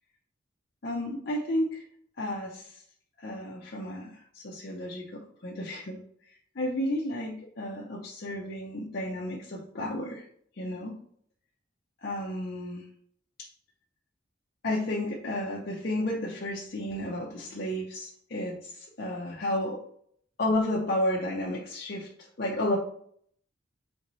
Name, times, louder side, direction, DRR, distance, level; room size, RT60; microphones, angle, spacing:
voice 1, 0.8-1.8 2.2-2.8 3.2-6.0 6.6-10.2 10.6-11.0 12.0-12.8 13.4-13.5 14.6-19.8 20.4-22.1 22.4-22.8, left 1 dB, 55° left, -4 dB, 0.6 m, -32 dB
3.5 x 3.0 x 4.0 m, 0.64 s
head